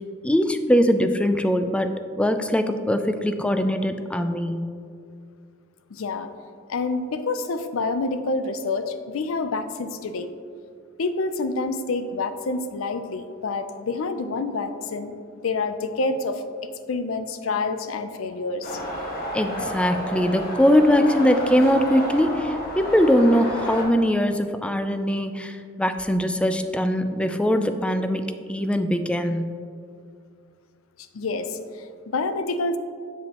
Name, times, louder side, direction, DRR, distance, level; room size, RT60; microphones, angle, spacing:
voice 1, 0.2-4.7 19.3-29.5, equal, 5° left, 8 dB, 0.3 m, -21 dB
voice 2, 5.9-6.3 6.7-10.3 11.0-15.1 15.4-16.4 16.9-18.8 31.1-32.8, left 3 dB, 85° left, 9 dB, 0.5 m, -27 dB
sound 1, 18.6-23.8, equal, 50° left, 1.4 m, -31 dB
7.7 x 7.0 x 2.9 m, 2.3 s
head